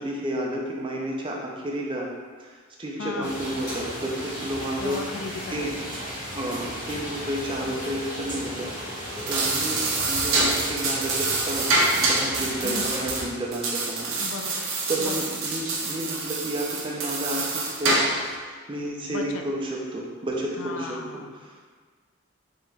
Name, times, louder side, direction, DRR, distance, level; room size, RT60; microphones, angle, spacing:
voice 1, 0.0-2.1 2.4-5.0 5.5-5.7 6.2-11.7 12.0-14.2 14.9-18.1 18.3-21.2 21.5-21.6, right 1 dB, 25° right, -2 dB, 0.4 m, -31 dB
voice 2, 3.0-3.4 4.8-5.9 12.6-12.9 14.2-14.7 15.0-15.4 19.1-19.4 20.6-21.6, left 4 dB, 60° left, 3 dB, 0.3 m, -36 dB
sound 1, 3.2-13.3, equal, 35° left, 1.4 m, -35 dB
sound 2, 9.1-18.3, right 3 dB, 70° right, 0.6 m, -26 dB
3.6 x 2.9 x 3.3 m, 1.5 s
head